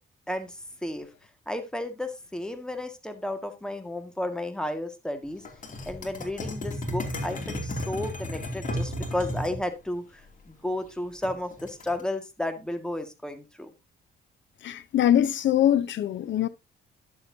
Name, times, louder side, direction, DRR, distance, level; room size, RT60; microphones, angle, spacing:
voice 1, 1.5-5.4 5.9-13.7, left 1 dB, 5° left, 1.8 m, -33 dB
sound 1, 5.4-9.6 11.2-12.0, left 1 dB, 40° left, 2.7 m, -33 dB
voice 2, 14.6-16.5, left 11 dB, 70° left, 0.9 m, -23 dB
11.5 x 7.2 x 2.8 m
cardioid pair, 90°, 20 cm